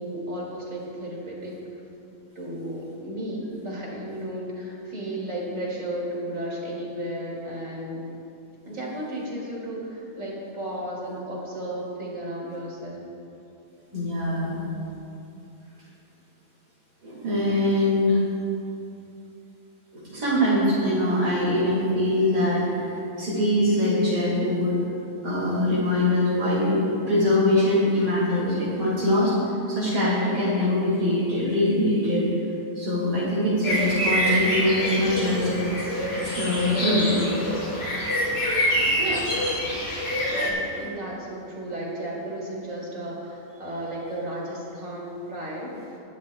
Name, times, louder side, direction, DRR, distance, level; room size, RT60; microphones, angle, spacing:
voice 1, 0.0-1.6 2.3-8.0 8.7-13.1 39.0-39.4 40.3-45.7, right 1 dB, 50° right, -4 dB, 3.0 m, -34 dB
voice 2, 13.9-14.6 17.0-18.2 19.9-24.7 25.2-26.8 27.1-29.3 29.7-32.3 32.8-35.6 36.1-37.2 38.7-39.0 40.7-40.9, left 1 dB, 70° right, -8 dB, 3.0 m, -23 dB
sound 1, 33.6-40.5, equal, 45° left, 3.3 m, -26 dB
20.5 x 12.0 x 2.3 m, 2.7 s
omnidirectional pair, 1.8 m